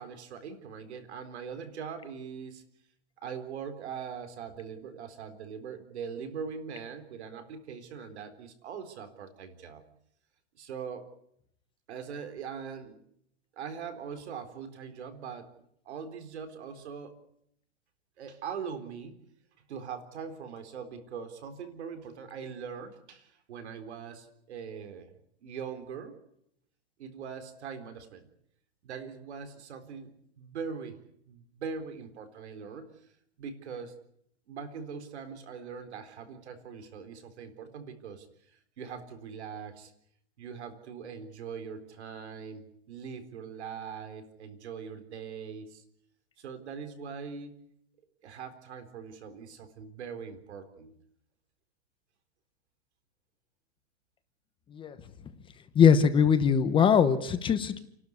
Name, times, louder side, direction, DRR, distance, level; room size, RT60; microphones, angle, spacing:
voice 1, 0.0-2.6 3.2-9.8 10.6-11.1 11.9-13.0 13.6-15.5 15.9-17.2 18.2-19.2 19.6-25.1 25.4-26.2 27.0-28.3 28.8-31.0 31.3-32.9 33.4-34.0 34.5-38.3 38.5-39.9 40.4-45.8 46.4-47.6 48.2-50.9, right 6 dB, 75° right, 9 dB, 4.1 m, -41 dB
voice 2, 55.7-57.8, left 7 dB, 15° left, 10 dB, 1.0 m, -21 dB
29.0 x 12.5 x 9.7 m, 0.72 s
hypercardioid pair, 150°, 34 cm